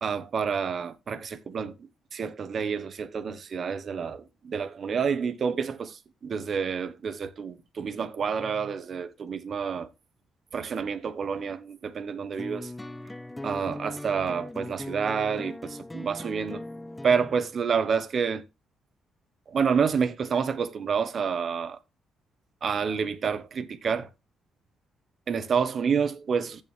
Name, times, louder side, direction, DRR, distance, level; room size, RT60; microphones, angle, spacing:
voice 1, 0.0-1.7 2.1-9.9 10.5-12.7 13.4-16.6 17.0-18.4 19.5-21.8 22.6-24.1 25.3-26.6, right 6 dB, 50° right, 1.0 m, -28 dB
sound 1, 12.4-17.4, left 1 dB, 10° left, 0.7 m, -39 dB
15.5 x 5.7 x 3.2 m
cardioid pair, 90°, 0 cm